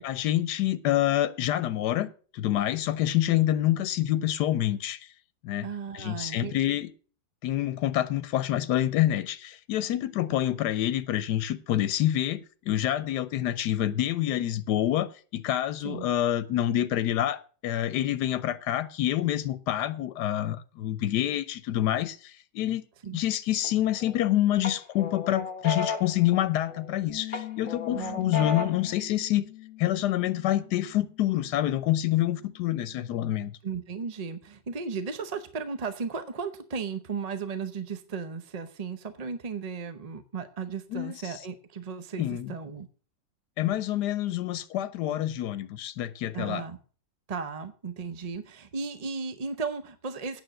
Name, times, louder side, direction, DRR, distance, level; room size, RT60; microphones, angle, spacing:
voice 1, 0.0-5.1 5.4-5.7 5.9-6.9 7.4-22.8 23.1-29.5 29.8-33.5 40.9-41.4 42.2-42.5 43.6-46.6, left 13 dB, 85° left, 1.2 m, -27 dB
voice 2, 5.6-6.7 15.8-16.1 23.0-23.2 27.9-28.3 33.6-42.9 46.3-46.8 47.3-50.4, right 5 dB, 40° right, 0.6 m, -35 dB
sound 1, 23.6-24.2 24.6-26.9 27.3-28.9, left 5 dB, 35° left, 1.3 m, -34 dB
Bass guitar, 27.1-33.3, left 16 dB, 60° left, 1.8 m, -44 dB
9.1 x 6.9 x 7.7 m
omnidirectional pair, 1.7 m